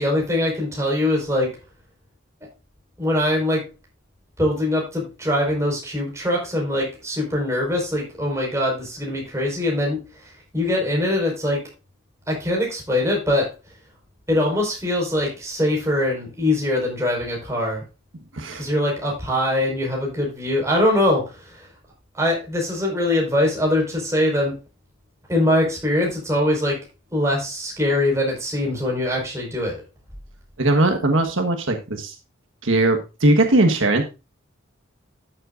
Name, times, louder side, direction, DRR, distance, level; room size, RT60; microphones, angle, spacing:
voice 1, 0.0-1.5 3.0-3.6 4.4-10.0 10.5-11.6 12.3-13.5 14.3-17.8 18.5-21.7 22.1-24.5 25.3-26.8 27.1-29.8, left 1 dB, 15° right, -1 dB, 4.8 m, -22 dB
voice 2, 18.3-18.7 30.6-32.1 32.6-34.0, right 2 dB, 80° right, 4 dB, 1.4 m, -19 dB
13.0 x 7.7 x 2.5 m, 0.28 s
head